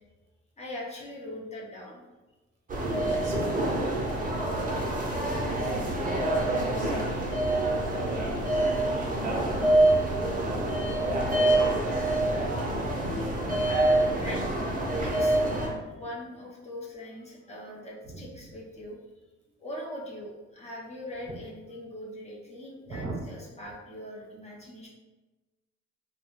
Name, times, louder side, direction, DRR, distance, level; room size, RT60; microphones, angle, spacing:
voice 1, 0.6-2.0 14.2-14.4 15.0-19.0 19.6-24.9, left 1 dB, 20° left, -4 dB, 0.6 m, -41 dB
sound 1, 2.7-15.7, right 1 dB, 25° right, 0.7 m, -26 dB
voice 2, 3.0-12.4 13.7-13.9 16.0-16.1 18.0-18.5 21.2-21.4 22.9-23.2, right 2 dB, 60° right, -2 dB, 0.8 m, -41 dB
2.3 x 2.1 x 3.0 m, 1.2 s
cardioid pair, 90°, 30 cm